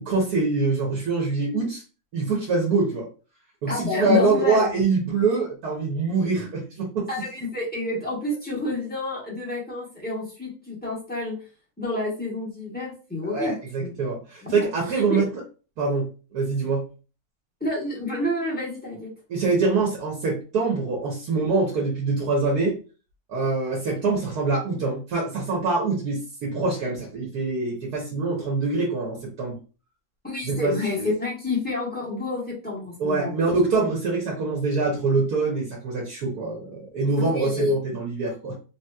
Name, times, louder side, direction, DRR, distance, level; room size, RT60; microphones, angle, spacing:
voice 1, 0.0-1.8 2.1-3.1 3.6-7.1 13.2-15.3 15.8-16.9 19.3-22.8 23.3-29.5 30.4-31.1 33.0-38.6, right 3 dB, 85° right, -2 dB, 1.4 m, -24 dB
voice 2, 3.7-4.7 7.1-11.4 11.8-13.9 14.4-15.2 17.6-19.1 30.2-33.3 37.2-37.7, left 2 dB, 5° left, -6 dB, 1.1 m, -29 dB
3.2 x 2.9 x 2.2 m, 0.35 s
omnidirectional pair, 1.6 m